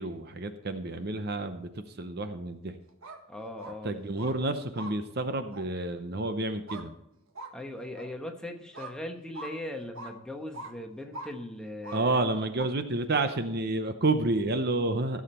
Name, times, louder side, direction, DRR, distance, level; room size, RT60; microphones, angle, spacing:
voice 1, 0.0-2.7 3.8-6.9 11.9-15.2, right 2 dB, 45° right, 9 dB, 0.8 m, -30 dB
sound 1, 2.9-3.2 3.6-3.7 4.2-4.3 4.7-4.9 5.5-5.6 6.7-6.9 7.3-7.5 8.0-8.1 8.7-8.9 9.3-9.5 9.9-10.1 10.5-10.7 11.1-11.3 11.8-12.0 12.6-12.7, right 2 dB, 70° right, 1.5 m, -41 dB
voice 2, 3.3-3.9 7.5-12.3 15.1-15.2, left 1 dB, 5° left, 3 dB, 1.1 m, -39 dB
15.0 x 7.3 x 4.3 m, 0.83 s
head